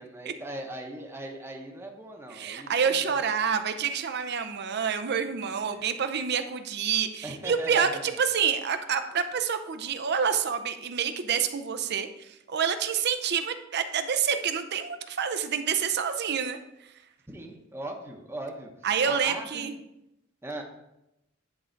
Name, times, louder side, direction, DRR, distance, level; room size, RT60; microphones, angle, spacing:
voice 1, 0.0-3.2 5.6-5.9 7.2-8.1 17.3-18.7 19.0-19.8 20.4-20.6, right 1 dB, 10° right, 1 dB, 0.9 m, -39 dB
voice 2, 2.3-16.6 18.8-19.7, right 7 dB, 55° right, 9 dB, 0.6 m, -28 dB
10.5 x 3.8 x 4.5 m, 0.88 s
head